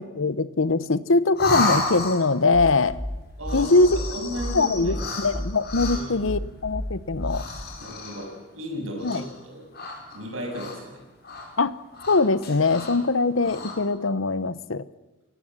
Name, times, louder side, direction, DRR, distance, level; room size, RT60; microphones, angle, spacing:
voice 1, 0.2-3.0 3.5-7.4 9.0-9.2 11.6-11.7 12.1-14.8, left 3 dB, 65° left, 16 dB, 0.9 m, -22 dB
sound 1, 1.3-2.5 3.4-6.2 7.2-8.4 9.0-9.4 9.7-10.9 11.2-11.5 11.9-13.0 13.3-13.8, left 3 dB, 45° left, 4.9 m, -31 dB
sound 2, 2.5-7.7, equal, 5° left, 2.0 m, -32 dB
voice 2, 3.4-5.1 5.9-6.3 7.8-9.6 10.1-11.0 12.8-12.9, equal, 70° right, 1 dB, 7.1 m, -35 dB
29.5 x 15.5 x 7.5 m, 1.1 s
head